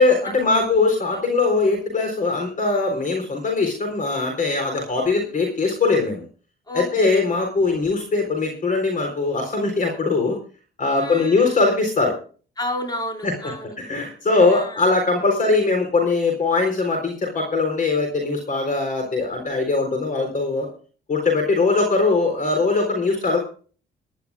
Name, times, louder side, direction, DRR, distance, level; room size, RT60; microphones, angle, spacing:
voice 1, 0.0-6.2 6.7-10.4 10.8-12.1 13.2-13.3 13.8-20.7 21.1-23.4, left 3 dB, 40° left, 4 dB, 3.9 m, -21 dB
voice 2, 4.9-5.3 6.7-7.1 10.9-11.6 12.6-13.8 14.5-14.8, left 1 dB, 20° left, 1 dB, 5.4 m, -31 dB
23.0 x 11.5 x 2.4 m, 0.40 s
cardioid pair, 90°, 20 cm